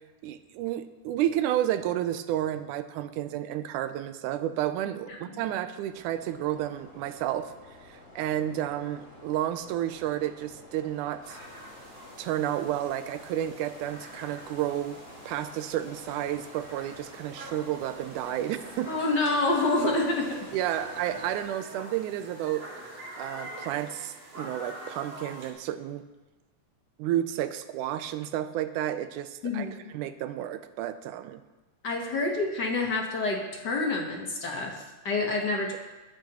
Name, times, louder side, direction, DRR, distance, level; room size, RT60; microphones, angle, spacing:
voice 1, 0.2-7.5 7.9-11.4 12.2-15.0 15.3-18.9 20.5-22.7 23.2-26.0 27.0-31.4, right 12 dB, 90° right, 11 dB, 2.1 m, -31 dB
voice 2, 5.1-5.4 18.9-20.2 29.4-29.9 31.8-35.8, left 3 dB, 50° left, 0 dB, 1.4 m, -28 dB
sound 1, 5.9-21.4, left 1 dB, 30° left, 3.5 m, -49 dB
sound 2, 11.2-25.5, right 1 dB, 55° right, 3.4 m, -46 dB
22.0 x 8.9 x 3.0 m, 1.2 s
omnidirectional pair, 3.5 m